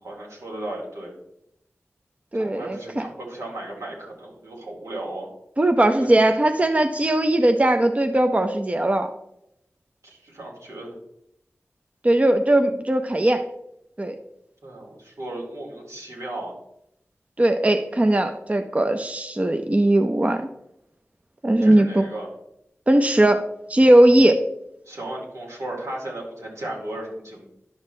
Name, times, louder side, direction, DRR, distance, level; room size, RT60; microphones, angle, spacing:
voice 1, 0.0-1.1 2.3-5.3 6.0-6.1 10.0-10.9 14.6-16.5 21.6-22.3 24.9-27.5, right 1 dB, 80° right, -3 dB, 2.5 m, -35 dB
voice 2, 2.3-3.0 5.6-9.1 12.0-13.4 14.0-14.1 17.4-20.5 21.4-22.0 22.9-23.4 23.7-24.4, right 1 dB, 25° right, 7 dB, 0.6 m, -19 dB
10.5 x 5.8 x 3.2 m, 0.80 s
cardioid pair, 50°, 5 cm